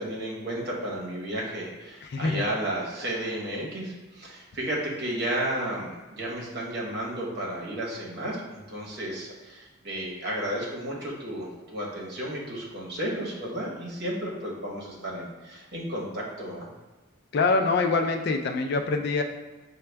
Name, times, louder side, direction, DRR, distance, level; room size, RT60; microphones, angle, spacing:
voice 1, 0.0-16.7, right 1 dB, 50° right, -3 dB, 1.1 m, -33 dB
voice 2, 2.0-2.5 17.3-19.2, left 3 dB, 50° left, 6 dB, 0.3 m, -25 dB
5.8 x 2.2 x 3.3 m, 1.2 s
head